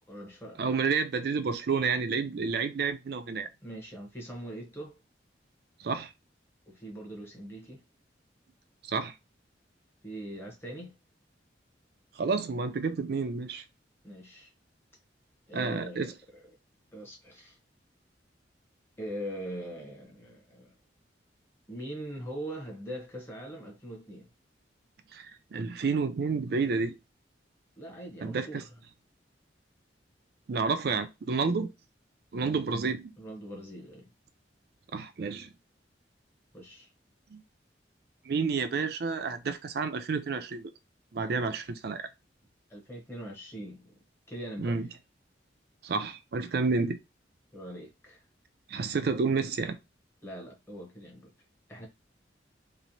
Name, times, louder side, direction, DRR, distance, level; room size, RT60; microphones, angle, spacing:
voice 1, 0.1-0.6 3.6-5.0 6.7-7.8 10.0-10.9 14.0-14.5 15.5-16.1 16.9-17.6 19.0-20.7 21.7-24.3 27.8-28.7 33.2-34.1 36.5-36.9 42.7-43.9 44.3-44.8 47.5-48.2 50.2-51.3 51.7-51.9, equal, 15° left, 0.8 m, -41 dB
voice 2, 0.6-3.5 5.8-6.1 8.8-9.2 12.1-13.6 15.5-16.1 25.1-27.0 28.2-28.6 30.5-31.7 32.3-33.1 34.9-35.5 37.3-37.4 38.2-40.7 41.1-42.0 44.6-44.9 45.8-47.0 48.7-49.8, right 4 dB, 60° right, 0.4 m, -30 dB
3.0 x 2.1 x 2.6 m
head